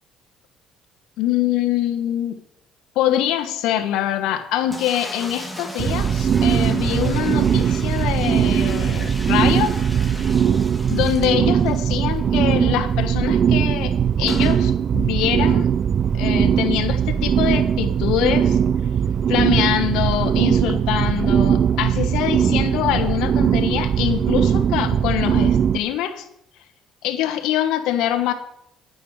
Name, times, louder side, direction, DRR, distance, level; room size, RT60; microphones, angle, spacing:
voice 1, 1.2-2.4 2.9-9.7 10.9-15.7 16.1-18.6 19.3-26.2 27.0-28.3, left 11 dB, 85° left, 6 dB, 1.2 m, -24 dB
sound 1, 4.7-11.9 12.2-12.3 12.5-12.6 14.3-14.6, left 1 dB, ahead, 2.1 m, -36 dB
sound 2, 5.8-25.8, right 8 dB, 50° right, 0.4 m, -20 dB
10.0 x 9.4 x 4.8 m, 0.77 s
cardioid pair, 95°, 0 cm